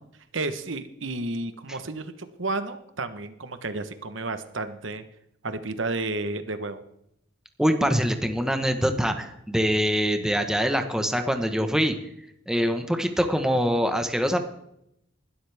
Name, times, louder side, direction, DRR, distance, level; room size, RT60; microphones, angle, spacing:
voice 1, 0.3-2.1 2.4-5.0 5.4-6.8, right 2 dB, 70° right, 10 dB, 1.1 m, -31 dB
voice 2, 7.6-11.9 12.5-14.4, equal, 5° right, 6 dB, 1.2 m, -24 dB
20.0 x 12.5 x 3.5 m, 0.77 s
head